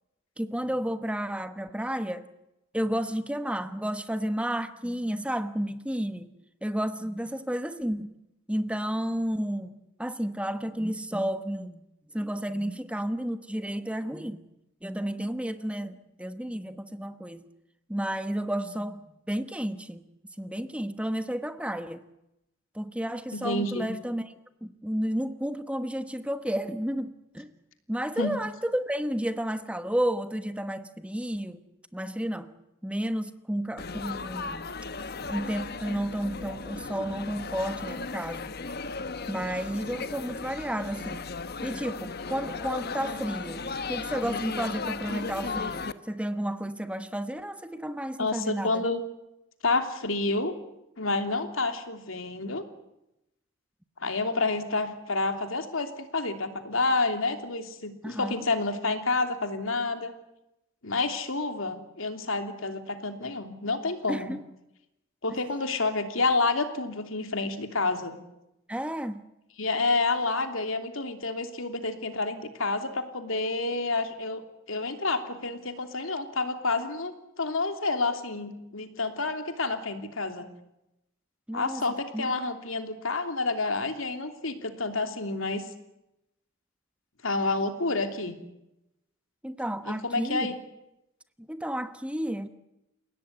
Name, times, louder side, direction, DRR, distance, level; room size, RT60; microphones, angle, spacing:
voice 1, 0.4-2.3 2.7-6.3 6.6-8.1 8.5-11.8 12.1-14.4 14.8-17.4 17.9-20.0 20.4-22.0 22.7-24.3 24.6-27.5 27.9-31.6 31.9-32.5 32.8-34.7 35.3-38.5 39.3-41.2 41.6-48.8 58.0-58.4 64.1-64.4 68.7-69.3 81.5-81.8 82.1-82.3 89.4-90.5 91.4-92.5, equal, 5° right, 1.2 m, -32 dB
voice 2, 23.3-23.9 28.2-28.3 48.2-49.0 49.6-50.5 51.0-52.6 54.0-60.1 60.8-64.3 65.2-68.2 69.6-74.4 74.7-80.5 81.5-85.6 87.2-88.3 89.9-90.6, left 3 dB, 75° left, 3.0 m, -29 dB
Laughter / Chatter / Crowd, 33.8-45.9, left 4 dB, 50° left, 1.1 m, -36 dB
29.5 x 17.5 x 9.7 m
head